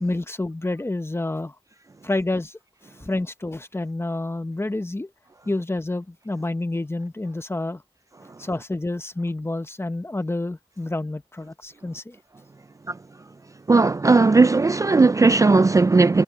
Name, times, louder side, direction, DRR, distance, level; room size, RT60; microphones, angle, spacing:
voice 1, 0.0-1.6 2.0-5.1 5.5-7.8 8.4-12.2, left 2 dB, 20° left, 1.1 m, -28 dB
voice 2, 13.7-16.2, right 3 dB, 30° right, 0.3 m, -16 dB
wide cardioid pair, 80°, 11 cm